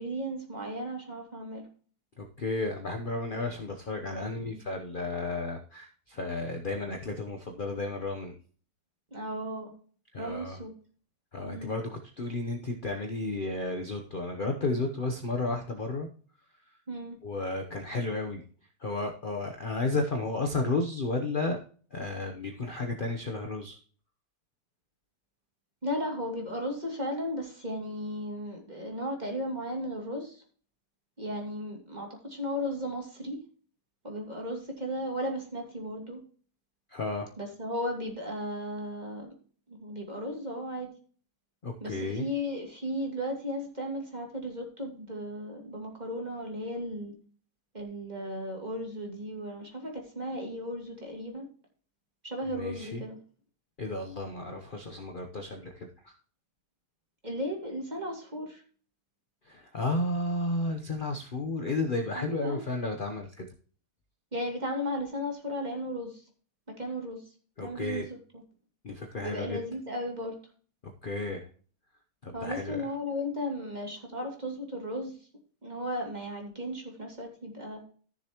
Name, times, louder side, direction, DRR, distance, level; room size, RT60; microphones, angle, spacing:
voice 1, 0.0-1.7 4.2-4.6 9.1-9.7 10.2-10.7 11.4-11.7 16.9-17.2 25.8-30.4 31.2-33.4 34.0-36.2 37.4-39.3 39.7-40.9 41.8-47.1 47.7-51.5 52.2-53.2 57.2-58.6 62.1-62.6 64.3-66.2 66.7-67.3 67.6-68.4 69.2-70.4 72.3-75.2 75.6-77.8, equal, 25° right, 1 dB, 2.6 m, -35 dB
voice 2, 2.2-8.3 10.1-10.6 11.3-16.1 17.2-18.4 18.8-21.6 21.9-23.8 36.9-37.3 41.6-42.3 52.5-53.0 53.8-56.1 59.4-63.5 67.6-68.1 68.8-69.6 71.0-71.5 72.2-72.8, left 2 dB, 40° left, 3 dB, 0.9 m, -33 dB
14.5 x 6.8 x 3.0 m, 0.43 s
omnidirectional pair, 1.7 m